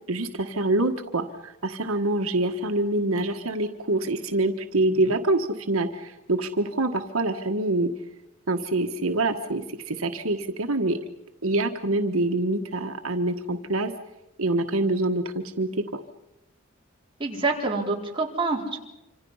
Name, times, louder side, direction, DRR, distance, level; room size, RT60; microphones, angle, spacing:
voice 1, 0.1-7.9 8.5-11.0 11.4-13.9 14.4-16.0, right 2 dB, 85° right, 6 dB, 1.5 m, -25 dB
voice 2, 17.2-18.8, right 3 dB, 25° right, -1 dB, 4.3 m, -26 dB
26.5 x 26.5 x 5.7 m, 0.93 s
head